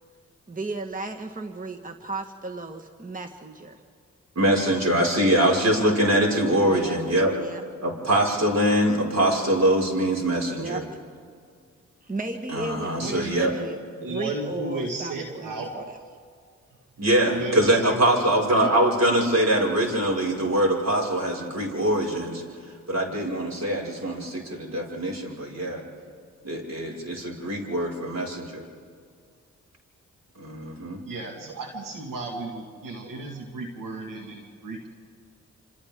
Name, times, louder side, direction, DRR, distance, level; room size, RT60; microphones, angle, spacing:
voice 1, 0.5-3.8 6.7-7.0 7.3-7.6 10.6-11.0 12.0-16.0, right 3 dB, 25° right, 4 dB, 1.6 m, -35 dB
voice 2, 4.4-7.3 7.8-10.8 12.5-13.5 17.0-22.4 22.9-25.8 26.4-28.7 30.4-31.0, right 1 dB, 55° right, -1 dB, 5.4 m, -23 dB
voice 3, 13.0-13.3 14.0-15.7 17.3-18.0 18.5-18.7 31.0-34.9, right 2 dB, 90° right, 1 dB, 1.9 m, -34 dB
27.5 x 27.5 x 3.7 m, 2.2 s
supercardioid pair, 40°, 32 cm